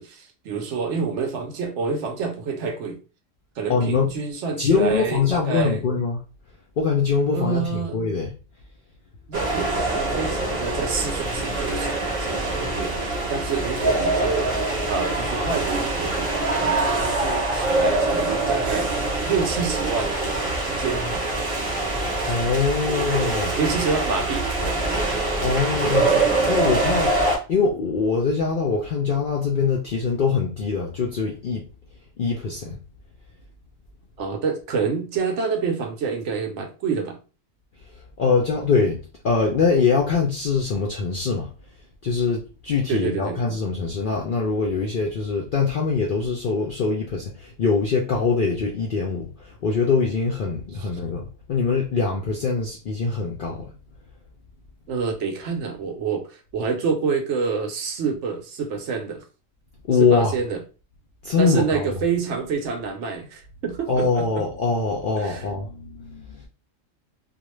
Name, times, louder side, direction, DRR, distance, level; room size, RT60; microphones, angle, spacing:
voice 1, 0.0-3.0 3.6-5.8 7.3-8.0 9.3-14.5 14.9-20.2 20.7-21.3 23.6-25.0 34.2-37.2 42.9-43.4 50.8-50.9 54.9-59.2 60.1-60.6 61.4-64.4 65.2-65.4, right 5 dB, 70° right, 0.8 m, -28 dB
voice 2, 3.7-4.1 4.6-6.2 6.8-8.3 22.2-23.6 25.4-26.1 26.5-27.1 27.5-31.7 32.2-32.8 38.0-41.5 42.0-53.7 59.9-60.3 61.2-61.9 63.9-66.5, left 4 dB, 65° left, 0.5 m, -23 dB
sound 1, 9.3-27.4, right 2 dB, 30° right, 0.7 m, -24 dB
2.4 x 2.1 x 3.0 m
omnidirectional pair, 1.4 m